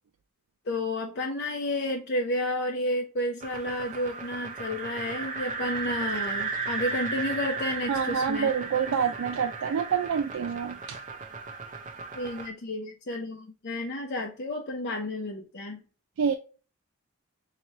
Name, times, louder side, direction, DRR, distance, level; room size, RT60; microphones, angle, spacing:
voice 1, 0.7-8.5 12.1-15.8, left 1 dB, 50° left, 0.6 m, -31 dB
sound 1, 3.4-12.5, right 4 dB, 40° right, 0.6 m, -35 dB
voice 2, 7.9-11.0 16.2-16.3, right 7 dB, 90° right, 0.4 m, -27 dB
4.5 x 2.9 x 2.7 m
head